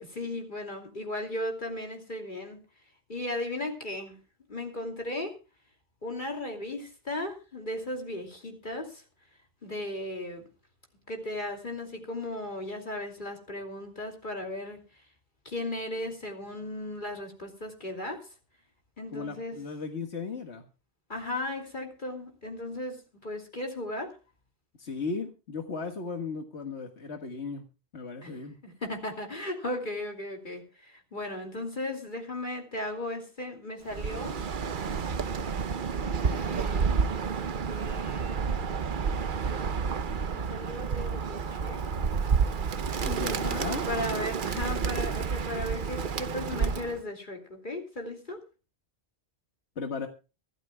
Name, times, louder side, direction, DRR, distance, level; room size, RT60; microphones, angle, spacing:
voice 1, 0.0-2.6 3.1-4.2 4.5-5.4 6.0-9.0 9.6-10.5 11.1-15.0 15.4-18.3 19.0-19.6 21.1-24.2 28.2-28.4 28.6-34.4 36.2-37.1 37.5-38.6 40.3-41.8 43.1-43.6 43.9-48.4, left 1 dB, 50° left, 2.9 m, -36 dB
voice 2, 19.1-20.6 24.8-27.6 27.9-28.6 43.0-43.9 49.8-50.1, left 4 dB, 85° left, 1.9 m, -36 dB
Bird, 33.9-47.0, right 6 dB, 50° right, 0.9 m, -30 dB
24.5 x 13.0 x 2.3 m
omnidirectional pair, 1.1 m